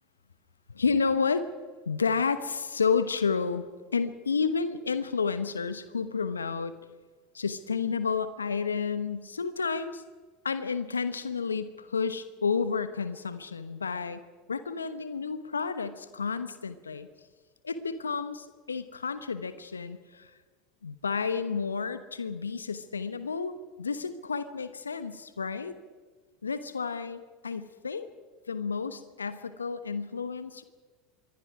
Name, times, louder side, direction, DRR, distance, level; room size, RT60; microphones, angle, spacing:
voice 1, 0.7-1.5 1.9-3.7 3.9-6.8 7.3-10.0 10.4-14.2 14.5-17.1 17.6-20.3 20.8-25.8 26.4-28.1 28.5-30.6, left 5 dB, 85° left, 12 dB, 1.1 m, -31 dB
26.5 x 22.5 x 4.9 m, 1.4 s
figure-of-eight pair, 75°, 0 cm